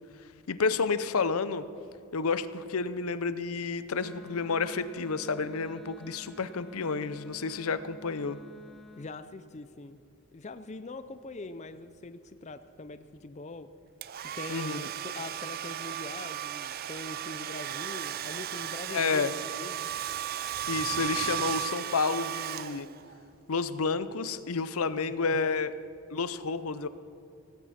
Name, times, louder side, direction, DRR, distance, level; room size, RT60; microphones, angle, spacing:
voice 1, 0.5-1.6 2.1-8.4 14.5-14.9 18.9-19.3 20.7-22.9 23.5-25.7 26.1-26.9, left 4 dB, 80° left, 14 dB, 0.6 m, -30 dB
Wind instrument woodwind instrument, 4.0-9.1, left 1 dB, ahead, 0.9 m, -51 dB
voice 2, 9.0-10.0 10.3-13.7 14.2-19.9 25.2-25.5, left 2 dB, 30° left, 11 dB, 0.5 m, -43 dB
Domestic sounds home sounds, 14.0-23.2, right 10 dB, 45° right, 0.4 m, -35 dB
17.5 x 16.0 x 4.3 m, 2.6 s
head